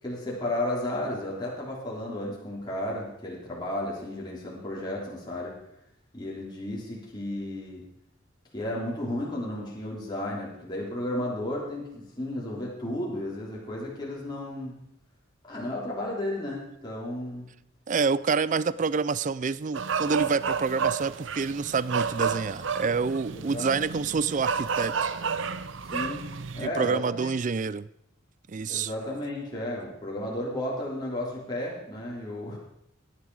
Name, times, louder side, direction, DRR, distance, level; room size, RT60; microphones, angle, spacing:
voice 1, 0.0-5.6 6.1-7.9 8.5-14.7 15.4-17.5 23.3-23.7 25.9-26.3 26.5-27.3 28.7-32.6, left 1 dB, 20° left, -5 dB, 3.5 m, -33 dB
voice 2, 17.9-24.9 26.6-27.9 28.5-28.9, right 5 dB, 40° right, 18 dB, 0.4 m, -27 dB
sound 1, 19.7-26.7, right 6 dB, 70° right, 0.7 m, -31 dB
17.5 x 11.0 x 4.8 m, 0.80 s
head